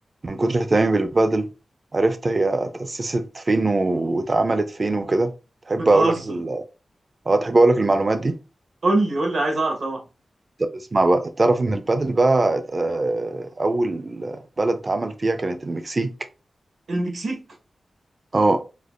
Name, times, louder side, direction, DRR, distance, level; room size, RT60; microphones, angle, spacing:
voice 1, 0.2-1.5 1.9-5.3 5.7-6.6 7.3-8.3 10.6-16.1 18.3-18.6, right 2 dB, 35° right, 0.4 m, -21 dB
voice 2, 5.8-6.4 8.8-10.0 16.9-17.4, right 2 dB, 70° right, 1.1 m, -23 dB
5.0 x 2.1 x 2.4 m
wide cardioid pair, 115°, 0 cm